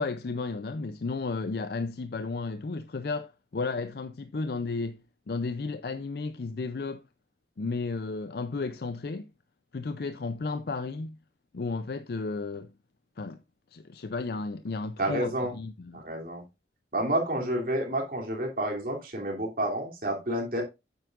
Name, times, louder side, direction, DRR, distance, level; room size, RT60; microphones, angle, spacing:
voice 1, 0.0-5.0 5.3-7.0 7.6-9.3 9.7-11.2 11.5-12.7 13.2-13.4 13.7-16.0, left 3 dB, 60° left, 0.5 m, -33 dB
voice 2, 15.0-15.5 15.9-16.4 16.9-20.6, right 1 dB, 55° right, 2.8 m, -29 dB
9.3 x 8.0 x 2.5 m
head